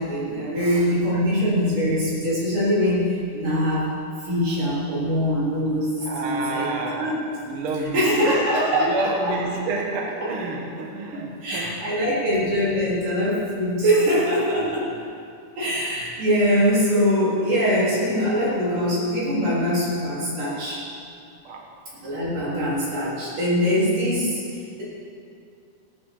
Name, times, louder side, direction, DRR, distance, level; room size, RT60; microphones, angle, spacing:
voice 1, 0.0-3.9 4.2-6.7 7.0-7.2 7.9-9.1 10.2-10.3 11.1-14.8 15.6-20.8 22.0-24.4, equal, 85° right, -7 dB, 5.5 m, -22 dB
voice 2, 6.0-7.2 7.5-8.1 8.7-11.8 13.9-14.3 14.5-14.9 21.4-21.7, right 3 dB, 50° right, 0 dB, 2.0 m, -30 dB
16.5 x 8.7 x 7.3 m, 2.3 s
omnidirectional pair, 3.7 m